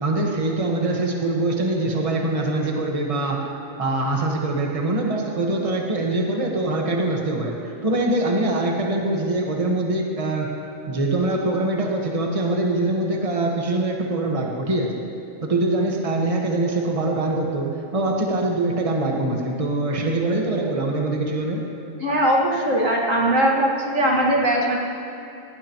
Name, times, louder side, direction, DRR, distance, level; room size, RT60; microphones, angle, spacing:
voice 1, 0.0-3.5 3.8-10.5 10.9-14.9 15.4-17.7 17.9-21.6, right 2 dB, 25° right, -1 dB, 1.5 m, -23 dB
voice 2, 22.0-24.8, right 1 dB, 70° right, -2 dB, 2.4 m, -20 dB
19.5 x 17.5 x 3.1 m, 2.9 s
omnidirectional pair, 1.4 m